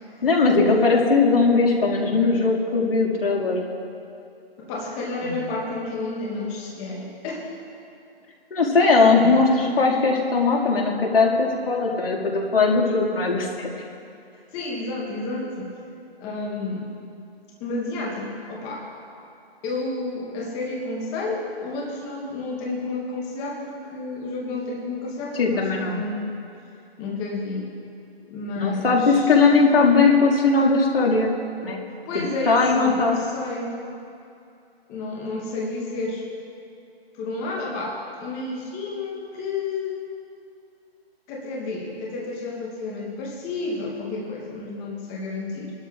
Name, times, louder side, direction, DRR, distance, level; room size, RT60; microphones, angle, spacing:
voice 1, 0.2-3.6 5.2-5.5 8.5-13.7 25.4-26.0 28.6-31.3 31.6-31.8 32.5-33.2, left 4 dB, 65° left, -2 dB, 1.9 m, -19 dB
voice 2, 4.6-7.6 14.5-15.7 16.2-16.9 17.6-18.9 19.6-26.4 27.0-27.7 28.2-29.4 32.1-33.8 34.9-36.3 37.1-40.0 41.3-45.7, left 2 dB, 10° left, -2 dB, 0.8 m, -31 dB
22.0 x 12.0 x 2.3 m, 2.5 s
hypercardioid pair, 155°, 31 cm